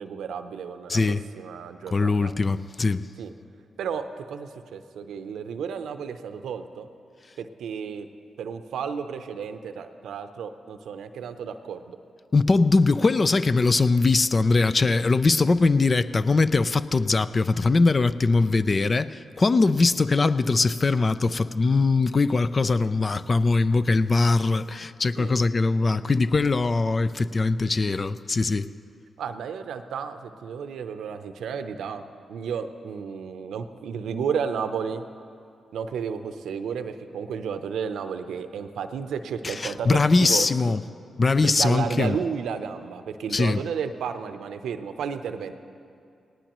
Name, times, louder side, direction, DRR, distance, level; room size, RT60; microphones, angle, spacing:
voice 1, 0.0-1.0 1.4-2.3 3.2-3.3 3.8-6.9 7.4-8.1 8.4-12.0 25.2-25.3 29.2-35.0 35.7-40.5 41.4-45.5, right 6 dB, 80° right, 9 dB, 0.7 m, -32 dB
voice 2, 0.9-1.2 1.9-3.0 12.3-28.7 39.4-40.8 41.2-42.1 43.3-43.6, left 3 dB, 45° left, 13 dB, 0.5 m, -21 dB
18.5 x 18.0 x 3.0 m, 2.5 s
supercardioid pair, 45°, 0 cm